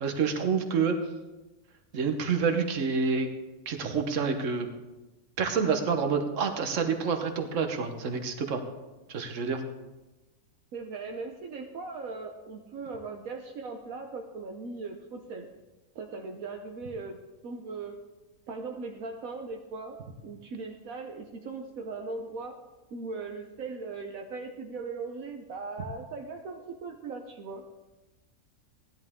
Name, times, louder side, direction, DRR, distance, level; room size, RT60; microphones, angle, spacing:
voice 1, 0.0-1.0 1.9-3.3 3.7-4.7 5.4-8.6 9.1-9.6, right 5 dB, 65° right, 6 dB, 1.5 m, -28 dB
voice 2, 10.7-15.5 15.9-18.0 18.5-22.6 22.9-27.6, right 4 dB, 80° right, 3 dB, 1.3 m, -39 dB
16.0 x 10.5 x 3.6 m, 1.1 s
omnidirectional pair, 1.4 m